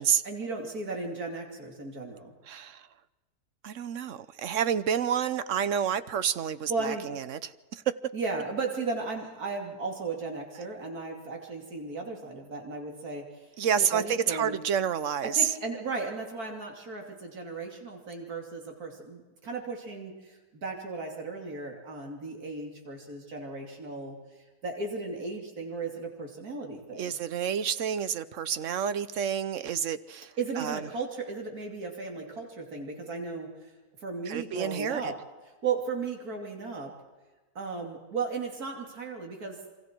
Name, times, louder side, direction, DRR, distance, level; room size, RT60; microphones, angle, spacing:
voice 1, 0.2-2.3 6.7-7.1 8.1-13.3 13.8-14.6 15.2-24.2 24.6-27.2 30.4-33.5 34.0-35.1 35.6-36.9 37.5-39.6, right 4 dB, 75° right, 3.4 m, -35 dB
voice 2, 2.5-2.9 3.6-7.8 13.6-15.5 26.9-30.8 34.3-35.1, right 8 dB, 60° right, 1.1 m, -29 dB
27.5 x 25.0 x 4.6 m
omnidirectional pair, 1.6 m